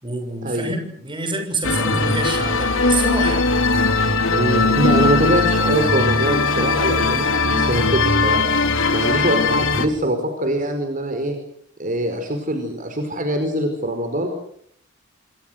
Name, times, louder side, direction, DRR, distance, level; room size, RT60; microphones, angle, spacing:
voice 1, 0.0-3.5, right 2 dB, 25° right, 6 dB, 6.8 m, -27 dB
sound 1, 1.6-9.9, left 3 dB, 75° left, 3.6 m, -19 dB
voice 2, 4.3-8.4 8.9-11.4 11.8-14.3, right 1 dB, 40° right, 5 dB, 4.8 m, -23 dB
27.5 x 26.5 x 6.6 m, 0.65 s
head